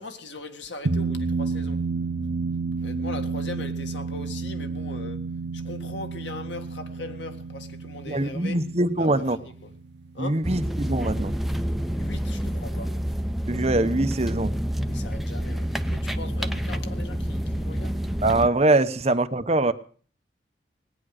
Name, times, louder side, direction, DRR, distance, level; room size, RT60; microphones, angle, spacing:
voice 1, 0.0-1.9 2.8-5.3 5.5-8.7 9.0-9.7 10.1-10.5 11.9-13.0 14.8-18.0, left 2 dB, 80° left, 1.9 m, -40 dB
sound 1, 0.9-11.5, right 4 dB, 70° right, 0.6 m, -31 dB
voice 2, 8.1-9.4 10.2-11.3 13.5-14.5 18.2-19.7, right 2 dB, 35° right, 0.9 m, -23 dB
sound 2, 10.4-18.5, equal, ahead, 0.8 m, -28 dB
18.5 x 10.0 x 6.5 m
head